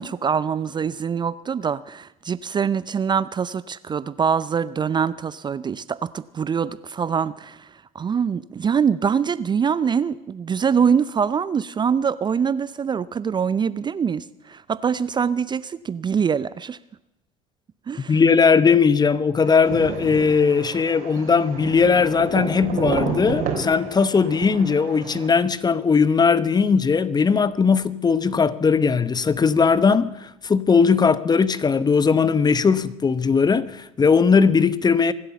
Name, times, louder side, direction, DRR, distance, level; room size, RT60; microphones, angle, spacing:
voice 1, 0.0-7.7 7.9-16.8 17.9-18.2, right 7 dB, 30° right, 0.5 m, -24 dB
voice 2, 18.1-35.1, left 5 dB, 25° left, 0.9 m, -19 dB
sound 1, 19.4-25.3, right 6 dB, 60° right, 3.6 m, -30 dB
24.0 x 8.1 x 7.0 m
hypercardioid pair, 65°, 16 cm